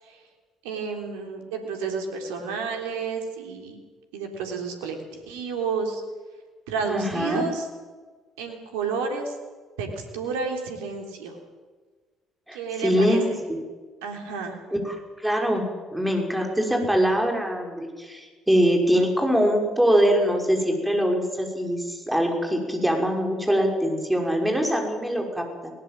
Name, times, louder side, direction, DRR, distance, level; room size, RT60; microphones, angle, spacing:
voice 1, 0.6-3.8 4.1-5.0 5.3-6.0 6.7-7.7 8.4-9.4 9.8-9.9 10.1-11.3 12.5-13.4 14.0-14.5, right 5 dB, 75° right, 3 dB, 3.4 m, -30 dB
voice 2, 6.9-7.4 12.5-13.6 14.7-15.6 15.9-25.7, equal, 5° right, 2 dB, 5.8 m, -23 dB
20.5 x 19.0 x 7.6 m, 1.4 s
hypercardioid pair, 50°, 0 cm